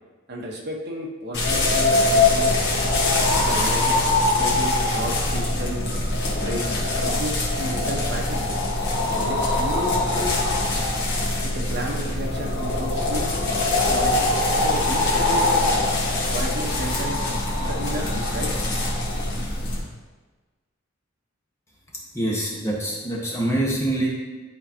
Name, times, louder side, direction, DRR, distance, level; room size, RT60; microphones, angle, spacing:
voice 1, 0.3-2.5 3.4-5.8 6.3-8.5 9.1-10.4 11.4-13.3 13.9-15.8 16.3-17.2 17.6-18.5, equal, 55° right, -2 dB, 1.2 m, -32 dB
sound 1, 1.3-19.8, left 2 dB, 55° left, 1.5 m, -23 dB
voice 2, 22.1-24.1, right 1 dB, 15° left, -4 dB, 1.3 m, -25 dB
11.0 x 4.4 x 2.9 m, 1.3 s
head